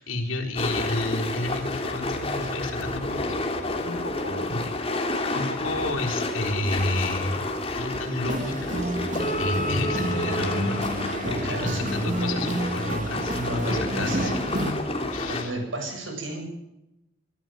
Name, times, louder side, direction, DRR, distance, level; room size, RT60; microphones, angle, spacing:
voice 1, 0.0-5.0 5.3-7.5 7.8-8.9 9.4-14.4 15.1-15.6, left 2 dB, 85° left, 0 dB, 4.2 m, -31 dB
sound 1, 0.6-15.4, left 2 dB, 30° left, 3.0 m, -30 dB
sound 2, 8.3-14.7, right 1 dB, 40° right, 2.9 m, -30 dB
voice 2, 11.2-11.8 13.5-14.3 14.9-16.4, right 1 dB, 75° right, 3 dB, 7.9 m, -33 dB
24.0 x 13.5 x 9.2 m, 0.90 s
head